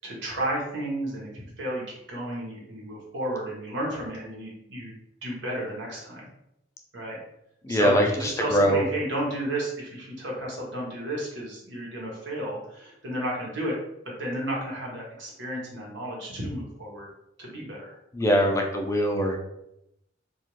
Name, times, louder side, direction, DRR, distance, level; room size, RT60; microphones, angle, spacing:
voice 1, 0.0-1.8 2.1-4.9 5.2-6.3 6.9-7.2 7.7-13.8 14.2-17.1 17.4-18.0 18.4-18.5, right 1 dB, 90° right, -4 dB, 1.1 m, -32 dB
voice 2, 7.6-8.8 18.1-19.4, equal, 15° left, 2 dB, 0.3 m, -22 dB
2.5 x 2.4 x 3.0 m, 0.83 s
head